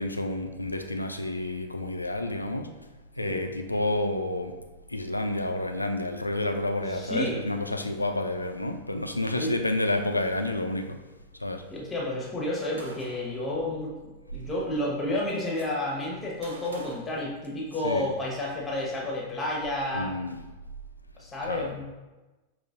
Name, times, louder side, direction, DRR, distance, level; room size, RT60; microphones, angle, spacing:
voice 1, 0.0-2.7 3.2-4.6 4.9-11.0 11.4-11.6 17.8-18.1 19.9-20.4 21.5-21.7, left 1 dB, 85° left, 6 dB, 0.3 m, -29 dB
voice 2, 6.9-7.4 9.3-9.5 11.7-20.2 21.2-21.8, left 1 dB, 20° left, -2 dB, 0.9 m, -31 dB
Gunshot gunfire, 12.8-13.4 14.6-14.7 14.9-15.7 16.4-17.9, right 2 dB, 70° right, 0.5 m, -48 dB
5.1 x 3.0 x 2.4 m, 1.1 s
figure-of-eight pair, 90°, 0 cm